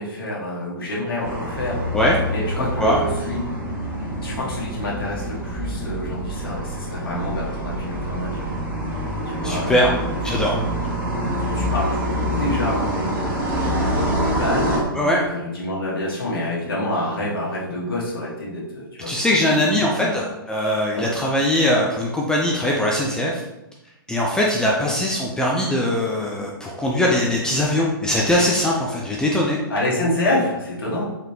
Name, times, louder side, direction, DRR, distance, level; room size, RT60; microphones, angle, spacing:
voice 1, 0.0-1.9 2.3-3.4 4.2-8.5 9.3-10.0 10.2-10.3 11.3-20.2 21.0-21.1 24.6-25.0 29.7-31.1, left 1 dB, 75° left, -5 dB, 1.3 m, -28 dB
sound 1, 1.2-14.8, equal, 20° right, 1.0 m, -26 dB
voice 2, 9.4-9.9 10.2-10.6 14.9-15.3 19.1-23.4 24.1-29.6, left 1 dB, 5° left, -3 dB, 0.4 m, -21 dB
4.1 x 3.1 x 2.8 m, 0.94 s
hypercardioid pair, 130°, 12 cm